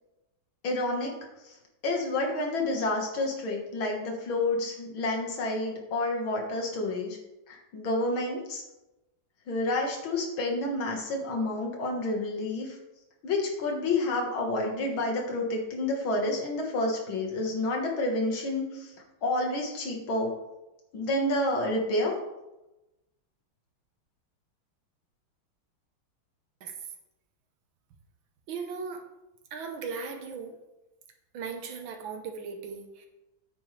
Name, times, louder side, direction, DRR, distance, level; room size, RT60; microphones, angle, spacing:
voice 1, 0.6-1.1 1.5-1.6 1.8-7.2 7.5-8.6 9.5-12.8 13.2-18.9 19.2-20.3 20.9-22.2, left 2 dB, 75° left, 0 dB, 2.2 m, -29 dB
voice 2, 28.5-29.0 29.5-30.6 31.3-33.1, right 5 dB, 75° right, 5 dB, 1.7 m, -37 dB
8.8 x 7.2 x 3.2 m, 0.98 s
omnidirectional pair, 2.2 m